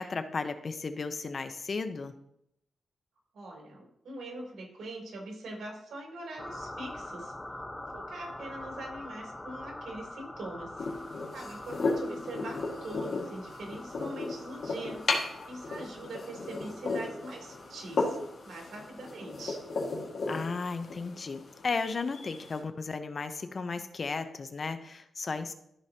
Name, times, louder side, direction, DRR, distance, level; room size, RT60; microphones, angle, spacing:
voice 1, 0.0-2.1 20.3-25.5, left 4 dB, 45° left, 9 dB, 0.7 m, -34 dB
voice 2, 3.3-7.3 7.9-10.8 11.3-15.0 15.5-18.2 18.4-19.6, right 1 dB, 75° right, -1 dB, 3.2 m, -42 dB
sound 1, 6.4-22.6, left 1 dB, 15° left, 0.9 m, -46 dB
sound 2, 10.8-22.6, left 3 dB, 65° left, 1.8 m, -35 dB
14.0 x 4.8 x 2.9 m, 0.76 s
cardioid pair, 95°, 0 cm